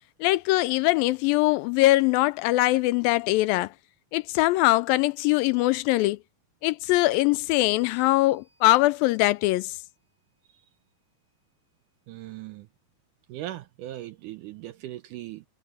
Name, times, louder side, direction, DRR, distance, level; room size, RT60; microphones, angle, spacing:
voice 1, 0.2-3.7 4.1-6.2 6.6-9.8, left 19 dB, 80° left, 2.2 m, -22 dB
sound 1, 7.5-10.0, equal, 60° right, 9.7 m, -63 dB
voice 2, 12.1-12.7 13.3-15.4, right 14 dB, 75° right, 1.9 m, -39 dB
omnidirectional pair, 4.2 m